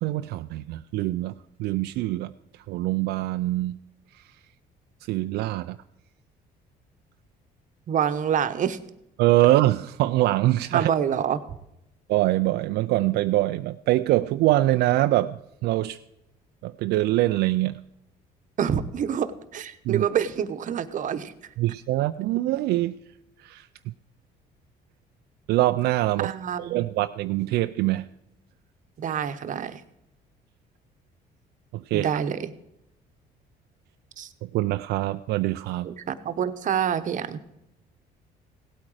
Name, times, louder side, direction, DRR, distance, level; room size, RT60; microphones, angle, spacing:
voice 1, 0.0-1.3 1.6-3.8 4.1-4.2 5.1-5.8 9.2-10.9 12.1-16.0 16.6-17.8 19.9-20.1 21.6-23.0 23.4-23.9 25.5-26.3 26.6-28.1 31.7-32.1 34.4-35.9, right 16 dB, 80° right, 9 dB, 0.4 m, -24 dB
voice 2, 7.9-8.8 10.7-11.4 18.6-21.3 26.2-26.8 29.0-29.8 31.9-32.5 34.2-34.3 35.8-37.4, right 8 dB, 50° right, 11 dB, 1.0 m, -27 dB
17.0 x 8.7 x 4.8 m, 0.87 s
cardioid pair, 110°, 17 cm